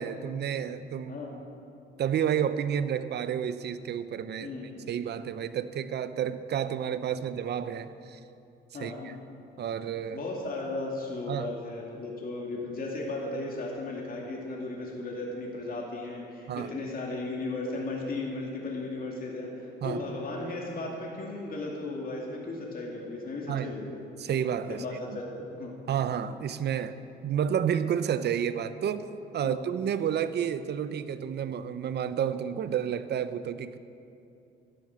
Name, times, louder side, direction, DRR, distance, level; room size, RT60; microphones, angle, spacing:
voice 1, 0.0-1.2 2.0-4.5 4.9-8.2 8.8-9.1 9.6-10.2 11.3-11.5 16.5-16.7 19.8-20.0 23.5-23.7 24.2-24.8 25.9-27.0 27.2-29.1 29.3-33.8, right 8 dB, 60° right, 13 dB, 0.7 m, -30 dB
voice 2, 1.1-1.4 4.4-4.9 8.7-9.2 10.1-24.0 24.7-25.7 29.4-29.6, left 2 dB, 45° left, -2 dB, 2.6 m, -36 dB
11.0 x 11.0 x 7.4 m, 2.6 s
cardioid pair, 90°, 20 cm